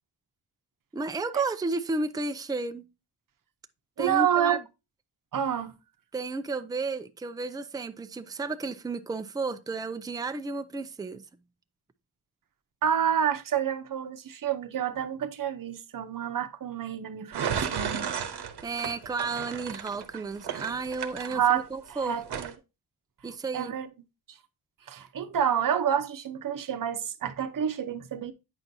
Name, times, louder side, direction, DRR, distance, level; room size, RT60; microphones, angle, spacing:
voice 1, 0.9-2.8 4.0-4.6 6.1-11.2 18.6-22.2 23.2-23.7, right 3 dB, 10° right, 0.4 m, -32 dB
voice 2, 4.0-4.6 5.3-5.7 12.8-18.1 21.2-22.5 23.5-23.9 24.3-24.4 24.9-28.3, right 9 dB, 55° right, 0.8 m, -28 dB
sound 1, 17.3-21.9 22.3-22.5, right 7 dB, 80° right, 0.9 m, -33 dB
8.9 x 6.0 x 2.7 m
wide cardioid pair, 145°, 40 cm